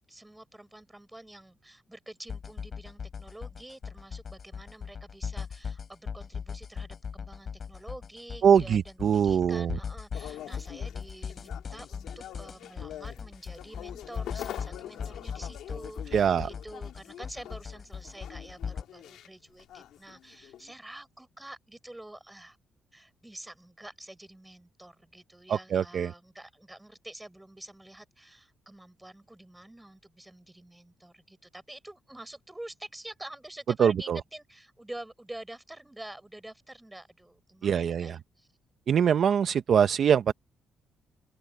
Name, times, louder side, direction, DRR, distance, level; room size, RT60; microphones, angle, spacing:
voice 1, 0.1-22.6 22.9-38.5, right 1 dB, 10° right, 6.4 m, -47 dB
sound 1, 2.3-18.8, left 6 dB, 45° left, 6.0 m, -38 dB
voice 2, 8.4-9.7 16.1-16.5 25.5-26.1 33.8-34.2 37.6-38.2 38.9-40.3, right 8 dB, 60° right, 0.8 m, -23 dB
sound 2, 10.1-20.7, left 12 dB, 80° left, 2.2 m, -45 dB
cardioid pair, 90°, 0 cm